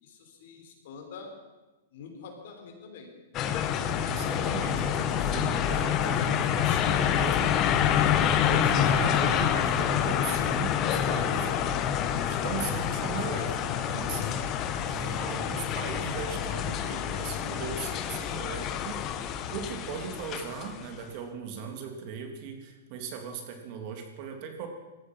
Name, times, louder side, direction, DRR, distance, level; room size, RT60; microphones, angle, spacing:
voice 1, 0.0-1.3 1.9-3.1 15.3-15.6, left 5 dB, 65° left, 3 dB, 4.2 m, -46 dB
sound 1, 3.3-20.8, left 9 dB, 30° left, 1.2 m, -27 dB
voice 2, 4.1-7.5 8.5-11.5 12.2-19.0 19.5-24.7, right 6 dB, 45° right, 4 dB, 3.1 m, -38 dB
18.0 x 14.0 x 5.7 m, 1.1 s
hypercardioid pair, 140°, 0 cm